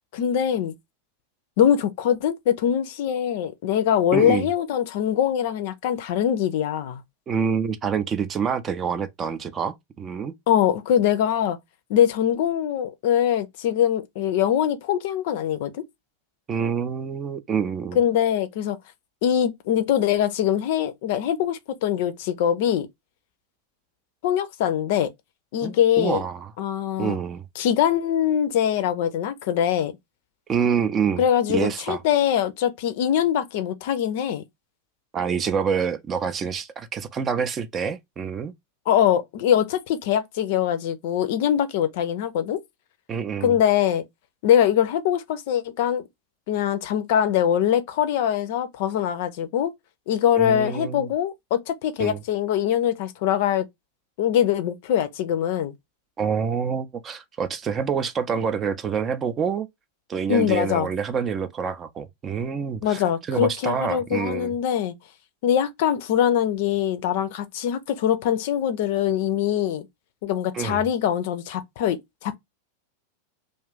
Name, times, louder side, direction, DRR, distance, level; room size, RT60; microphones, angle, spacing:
voice 1, 0.1-0.7 1.6-7.0 10.5-11.6 11.9-15.8 17.9-18.8 19.2-22.9 24.2-25.1 25.5-26.2 26.6-27.2 27.6-29.9 31.2-34.4 38.9-42.6 43.4-44.0 44.4-46.0 46.5-49.7 50.1-53.7 54.2-55.7 60.3-60.9 62.8-64.9 65.4-69.9 70.2-72.4, left 10 dB, 50° left, 0.5 m, -23 dB
voice 2, 4.1-4.5 7.3-10.3 16.5-18.0 25.6-26.5 27.0-27.4 30.5-31.2 31.5-32.0 35.1-38.5 43.1-43.6 50.4-51.1 52.0-52.2 56.2-59.7 60.1-63.0 63.3-64.5 70.5-70.8, right 6 dB, 25° right, 0.4 m, -27 dB
2.5 x 2.4 x 3.4 m
figure-of-eight pair, 90°, 0 cm